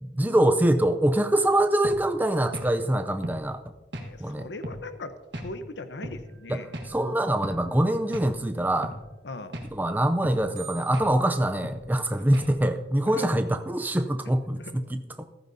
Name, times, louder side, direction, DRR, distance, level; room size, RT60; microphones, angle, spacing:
voice 1, 0.0-3.6 4.2-4.5 6.5-8.9 9.7-15.2, right 1 dB, 10° right, 8 dB, 0.5 m, -24 dB
sound 1, 1.8-2.0 2.5-2.7 3.2-3.4 3.9-4.1 4.6-4.8 5.3-5.5 6.0-6.2 6.7-6.9 7.4-7.6 8.1-8.3 8.8-9.0 9.5-9.7 10.2-10.4 10.9-11.1 11.6-11.8 12.3-12.5, equal, 85° right, 1.5 m, -36 dB
voice 2, 4.0-6.7 9.2-9.6 12.1-12.2 13.1-13.4 14.6-14.8, left 2 dB, 90° left, 10 dB, 0.9 m, -39 dB
sound 2, 6.3-7.9 8.8-8.9 9.4-9.5 9.6-9.7 10.6-11.6, right 4 dB, 55° right, 3.1 m, -46 dB
15.0 x 14.0 x 2.7 m, 1.2 s
head